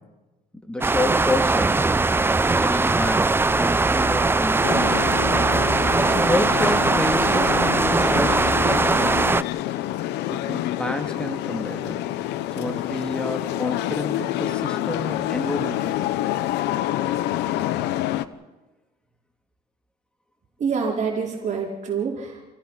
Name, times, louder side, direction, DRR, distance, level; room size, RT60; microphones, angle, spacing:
voice 1, 0.6-2.0 2.6-4.9 6.1-9.3 10.3-12.0 12.6-16.1, left 1 dB, 5° left, 4 dB, 2.6 m, -29 dB
sound 1, 0.8-9.4, right 3 dB, 15° right, 0.6 m, -20 dB
sound 2, 4.6-18.2, left 13 dB, 85° left, 0.9 m, -27 dB
voice 2, 20.6-22.4, right 5 dB, 45° right, -2 dB, 4.5 m, -26 dB
28.0 x 17.0 x 5.7 m, 1.2 s
cardioid pair, 110°, 17 cm